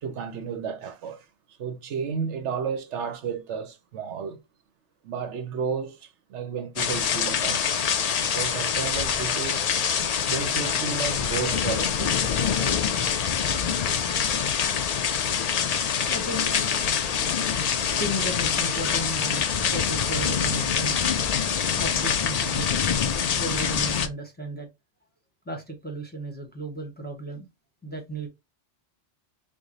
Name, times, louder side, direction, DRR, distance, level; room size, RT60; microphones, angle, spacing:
voice 1, 0.0-1.3 1.6-4.4 5.0-8.0 8.3-9.7 10.2-12.4 20.8-20.9, right 6 dB, 75° right, 1.0 m, -32 dB
sound 1, 6.8-24.1, left 7 dB, 75° left, 0.3 m, -25 dB
voice 2, 16.0-16.5 18.0-22.8 23.4-24.7 25.4-27.5 27.8-28.3, right 1 dB, 10° left, 0.8 m, -35 dB
4.8 x 2.0 x 3.8 m
omnidirectional pair, 1.2 m